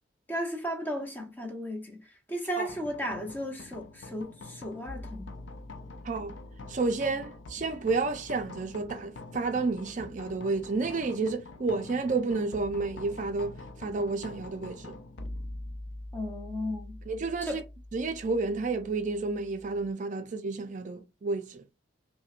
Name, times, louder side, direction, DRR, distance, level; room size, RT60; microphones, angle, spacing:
voice 1, 0.3-2.0 2.3-5.3 16.1-17.0 17.4-17.6, equal, 10° left, 0.8 m, -35 dB
sound 1, 2.7-19.9, left 2 dB, 85° left, 0.5 m, -45 dB
voice 2, 6.7-14.9 17.1-17.6 17.9-21.6, right 3 dB, 45° right, 0.4 m, -31 dB
5.6 x 2.1 x 2.5 m
head